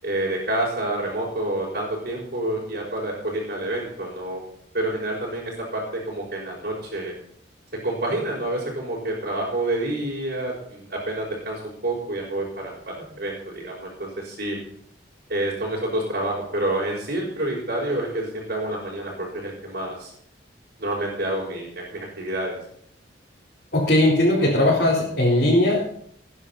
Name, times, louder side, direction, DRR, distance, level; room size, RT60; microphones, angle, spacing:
voice 1, 0.0-4.4 4.7-7.1 7.8-14.6 15.3-20.1 20.8-22.5, right 1 dB, 55° right, -6 dB, 5.4 m, -28 dB
voice 2, 23.7-25.8, left 1 dB, 55° left, -6 dB, 4.2 m, -19 dB
20.0 x 10.0 x 4.3 m, 0.66 s
head